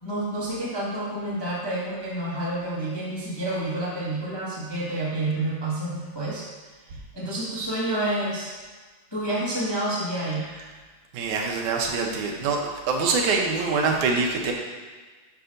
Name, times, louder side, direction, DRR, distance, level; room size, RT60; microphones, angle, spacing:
voice 1, 0.0-6.5 7.1-8.6 9.1-10.5, right 1 dB, 25° left, -8 dB, 0.5 m, -29 dB
voice 2, 11.1-14.5, right 4 dB, 80° right, 1 dB, 2.2 m, -24 dB
9.5 x 6.0 x 2.6 m, 1.4 s
omnidirectional pair, 3.4 m